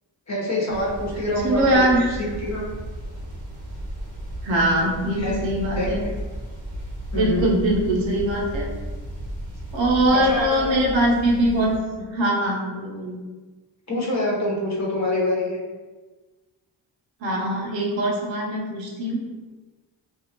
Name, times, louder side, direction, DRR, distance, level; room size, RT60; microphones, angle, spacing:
voice 1, 0.3-2.2 2.4-2.7 5.2-5.3 5.8-6.1 7.1-7.5 10.1-10.8 13.9-15.6, left 1 dB, 35° left, -5 dB, 1.0 m, -26 dB
sound 1, 0.7-11.8, equal, 40° right, 0.8 m, -34 dB
voice 2, 1.4-2.2 4.4-6.1 7.1-8.7 9.7-13.2 17.2-19.3, right 1 dB, 75° right, -2 dB, 0.8 m, -22 dB
2.6 x 2.4 x 2.8 m, 1.3 s
cardioid pair, 60°, 46 cm